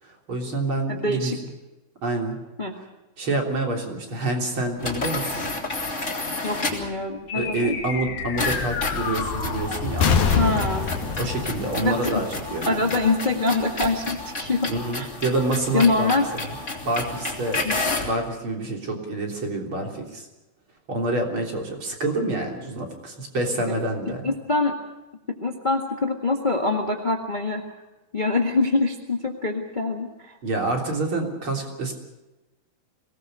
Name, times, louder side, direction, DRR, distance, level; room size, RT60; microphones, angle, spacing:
voice 1, 0.0-1.3 2.0-2.4 3.2-5.5 7.3-10.5 11.2-12.3 12.5-12.8 14.7-16.5 16.9-17.7 18.0-20.3 20.9-24.3 30.4-31.9, right 2 dB, 35° right, 1 dB, 3.9 m, -27 dB
voice 2, 0.9-1.4 2.6-2.7 6.4-7.7 10.3-10.9 11.8-12.2 12.7-14.7 14.9-15.1 15.7-16.2 17.6-17.8 23.6-23.7 24.2-24.7 25.4-27.6 28.1-30.4, left 3 dB, 45° left, 2 dB, 0.6 m, -24 dB
sound 1, 4.8-7.0 8.4-18.2, left 3 dB, 20° left, 3.6 m, -31 dB
sound 2, 7.3-13.0, left 6 dB, 80° left, 4.0 m, -27 dB
24.0 x 18.5 x 6.7 m, 1.1 s
omnidirectional pair, 4.1 m